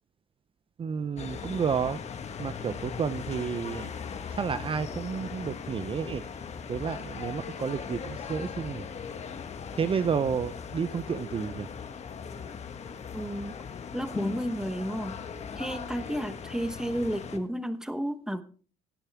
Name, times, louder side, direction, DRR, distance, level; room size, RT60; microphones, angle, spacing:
voice 1, 0.8-2.0 2.4-3.9 4.3-6.2 6.7-8.9 9.8-11.7, right 6 dB, 30° right, 12 dB, 0.6 m, -31 dB
sound 1, 1.2-17.4, left 6 dB, 40° left, 1.4 m, -39 dB
voice 2, 13.1-13.5 13.9-15.2 15.6-18.4, equal, 5° right, 12 dB, 1.1 m, -32 dB
17.0 x 9.8 x 3.5 m, 0.38 s
cardioid pair, 110°, 17 cm